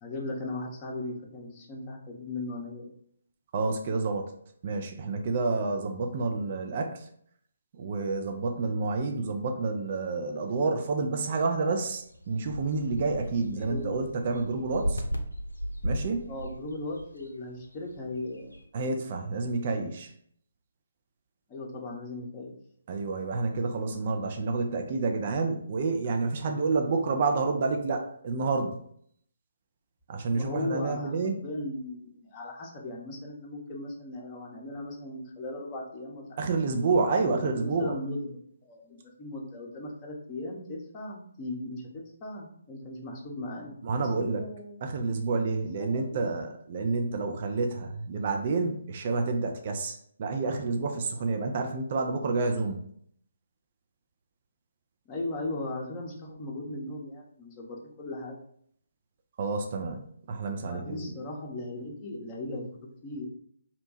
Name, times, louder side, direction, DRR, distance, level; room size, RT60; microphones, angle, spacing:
voice 1, 0.0-2.9 13.6-14.0 16.3-18.9 21.5-22.5 30.3-31.1 31.4-36.7 37.2-44.8 45.8-46.4 55.1-58.4 60.6-62.7 63.0-63.3, left 2 dB, 25° left, -1 dB, 0.7 m, -38 dB
voice 2, 3.5-4.3 4.6-7.1 7.8-15.0 15.8-16.3 18.7-20.1 22.9-28.8 30.1-31.4 36.4-38.0 43.8-44.4 44.8-52.8 59.4-61.1, right 3 dB, 40° right, 4 dB, 0.4 m, -29 dB
sound 1, 11.9-18.6, equal, 85° left, 0.5 m, -36 dB
2.8 x 2.2 x 4.1 m, 0.65 s
figure-of-eight pair, 135°, 0 cm